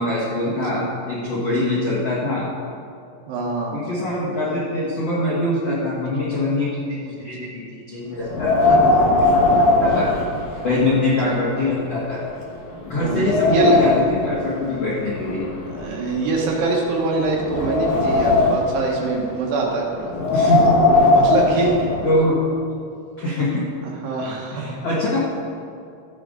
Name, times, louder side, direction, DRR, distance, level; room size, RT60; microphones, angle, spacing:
voice 1, 0.0-2.5 3.7-12.2 12.8-15.5 20.3-20.9 21.6-21.7 22.0-22.4 23.2-23.7 24.5-25.2, left 1 dB, 80° left, -7 dB, 1.3 m, -24 dB
voice 2, 3.3-3.8 8.7-8.8 11.3-11.4 13.0-13.8 15.7-20.1 21.1-21.7 23.8-24.7, right 3 dB, 70° right, -2 dB, 3.0 m, -24 dB
Wind, 8.3-10.9 11.2-11.3 12.0-12.1 12.6-14.2 15.1-16.6 17.2-18.8 20.0-22.2, left 2 dB, 60° left, 2.5 m, -18 dB
15.0 x 8.9 x 3.8 m, 2.5 s
omnidirectional pair, 5.6 m